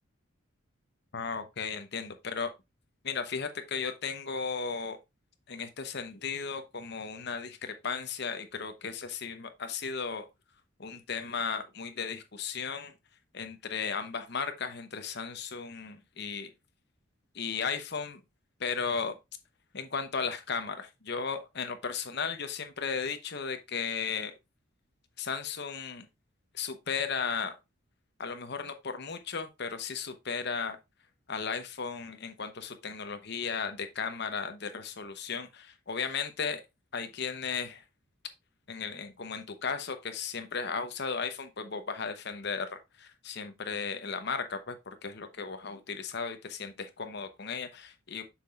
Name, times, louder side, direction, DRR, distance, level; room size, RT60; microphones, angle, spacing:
voice 1, 1.1-2.5 3.0-5.0 5.5-10.3 10.8-12.9 13.3-16.5 17.3-18.2 18.6-19.2 19.7-24.3 25.2-26.1 26.5-27.6 28.2-30.8 31.3-36.6 36.9-37.8 38.7-48.2, left 5 dB, 50° left, 0.8 m, -35 dB
7.2 x 5.6 x 2.4 m
head